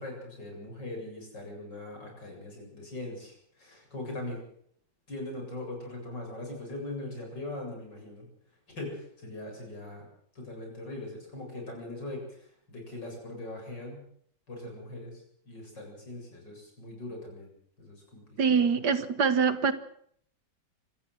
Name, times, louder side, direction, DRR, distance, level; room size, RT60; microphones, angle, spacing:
voice 1, 0.0-4.4 5.1-8.3 8.7-10.1 10.3-14.0 14.5-17.5 17.8-18.6, left 2 dB, 70° left, 1 dB, 8.4 m, -41 dB
voice 2, 18.4-19.7, right 6 dB, 65° right, 12 dB, 1.9 m, -24 dB
26.5 x 14.0 x 7.8 m, 0.65 s
omnidirectional pair, 2.0 m